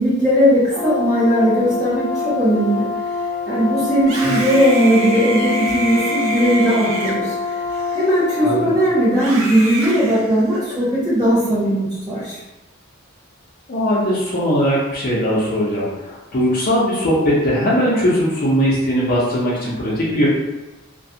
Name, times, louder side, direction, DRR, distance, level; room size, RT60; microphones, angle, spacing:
voice 1, 0.0-2.9 3.5-7.3 7.9-12.4, equal, 20° right, -10 dB, 1.0 m, -17 dB
Brass instrument, 0.7-9.1, left 4 dB, 5° left, 0.7 m, -25 dB
Screaming, 4.0-8.5 9.1-10.9, right 2 dB, 80° right, 0.5 m, -28 dB
voice 2, 8.4-8.7 13.7-20.3, equal, 45° left, -7 dB, 0.5 m, -19 dB
2.4 x 2.2 x 2.6 m, 1.0 s
head